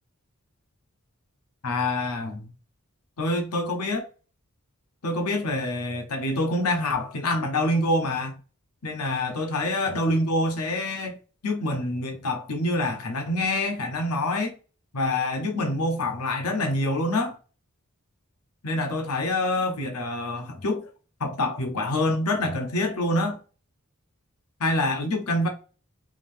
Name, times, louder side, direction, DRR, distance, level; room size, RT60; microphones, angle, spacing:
voice 1, 1.6-2.5 3.2-4.0 5.0-8.3 8.8-11.2 11.4-14.5 14.9-17.4 18.6-20.9 21.2-23.4 24.6-25.5, left 2 dB, 80° left, 0.8 m, -26 dB
3.6 x 2.7 x 3.3 m
head